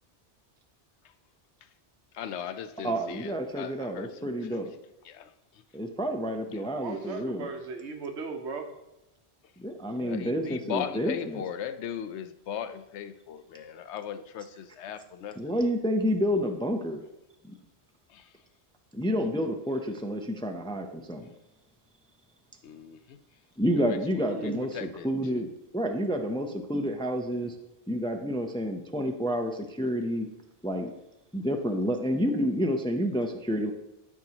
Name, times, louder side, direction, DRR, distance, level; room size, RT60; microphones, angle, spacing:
voice 1, 2.1-4.6 5.0-5.3 6.5-6.7 10.0-15.6 18.1-18.3 22.6-23.2 23.8-25.1, left 8 dB, 85° left, 11 dB, 0.9 m, -38 dB
voice 2, 2.8-4.7 5.7-7.5 9.6-11.4 15.4-17.0 17.4-17.5 18.9-21.3 23.6-27.5 27.9-30.3 30.6-30.9 31.3-33.7, equal, 5° left, 5 dB, 0.4 m, -29 dB
voice 3, 6.7-8.7 20.9-21.0 24.2-24.8, right 5 dB, 80° right, 5 dB, 1.2 m, -37 dB
13.0 x 4.7 x 2.9 m, 0.94 s
omnidirectional pair, 1.1 m